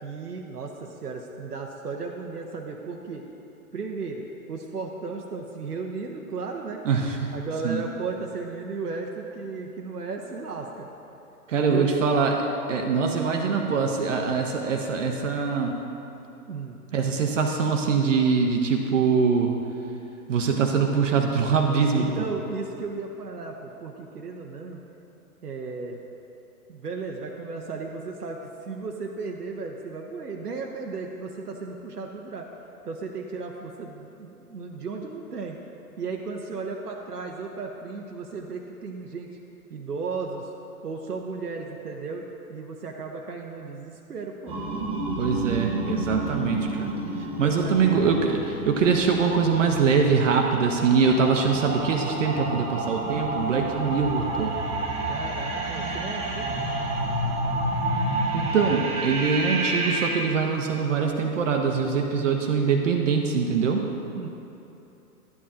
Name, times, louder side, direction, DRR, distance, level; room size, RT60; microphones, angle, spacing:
voice 1, 0.0-3.2 3.7-6.8 7.3-10.9 11.6-11.9 16.5-16.8 21.9-24.8 25.4-26.0 26.7-32.5 32.8-35.6 36.0-39.4 39.7-40.5 40.8-42.2 42.5-44.5 47.2-47.9 52.4-52.7 55.1-56.6 64.1-64.3, right 4 dB, 85° right, 0 dB, 0.8 m, -35 dB
voice 2, 6.8-7.3 7.6-7.8 11.5-15.8 16.9-19.5 20.3-22.1 45.2-46.9 47.4-54.5 58.3-63.8, right 5 dB, 55° right, 2 dB, 0.8 m, -23 dB
sound 1, 44.5-60.1, right 2 dB, 15° right, 0.8 m, -30 dB
12.0 x 8.8 x 2.5 m, 2.9 s
figure-of-eight pair, 120°, 46 cm